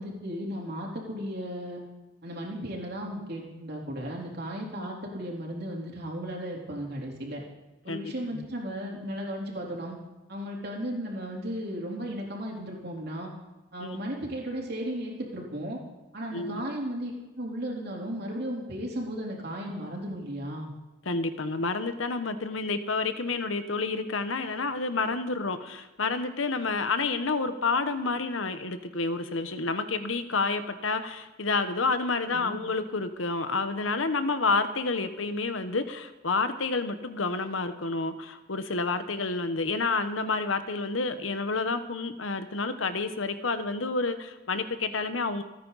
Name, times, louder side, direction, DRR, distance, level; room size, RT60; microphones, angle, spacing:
voice 1, 0.0-1.8 2.2-7.4 7.8-10.0 10.3-13.3 13.7-15.8 16.1-17.1 17.4-20.7 32.3-32.6, equal, 55° right, -2 dB, 3.7 m, -35 dB
voice 2, 7.9-8.4 13.8-14.0 16.3-16.6 21.0-45.4, left 3 dB, 85° left, 10 dB, 1.1 m, -29 dB
28.5 x 9.6 x 4.1 m, 1.1 s
head